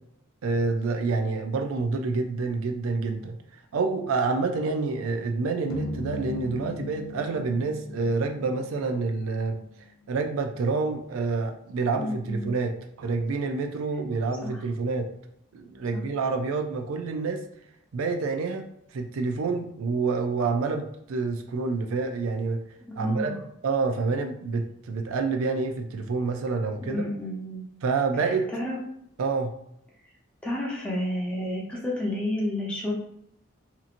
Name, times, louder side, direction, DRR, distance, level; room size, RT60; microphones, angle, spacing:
voice 1, 0.4-3.4 3.7-9.6 10.1-15.1 15.5-17.4 17.9-18.7 18.9-22.6 23.0-23.3 23.6-27.0 27.8-28.5 29.2-29.5, right 4 dB, 85° right, 5 dB, 0.4 m, -28 dB
sound 1, 5.7-10.1, left 2 dB, 80° left, 0.4 m, -38 dB
voice 2, 11.9-12.5 14.4-14.6 15.9-16.0 23.0-23.4 26.9-27.6 28.1-28.8 30.4-32.9, left 1 dB, 5° left, -5 dB, 0.7 m, -31 dB
2.9 x 2.5 x 2.5 m, 0.74 s
head